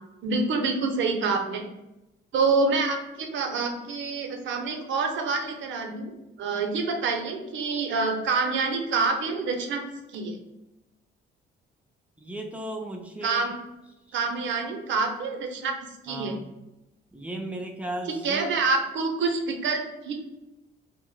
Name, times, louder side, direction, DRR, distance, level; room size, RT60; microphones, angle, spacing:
voice 1, 0.2-1.6 2.3-6.1 6.4-9.8 10.1-10.4 13.2-13.6 14.1-15.7 16.0-16.3 18.2-20.1, right 4 dB, 70° right, 3 dB, 0.6 m, -27 dB
voice 2, 12.2-13.5 14.1-14.2 16.1-16.5 17.1-18.5, right 1 dB, 5° right, 2 dB, 0.5 m, -36 dB
2.4 x 2.1 x 3.8 m, 0.95 s
cardioid pair, 90°, 20 cm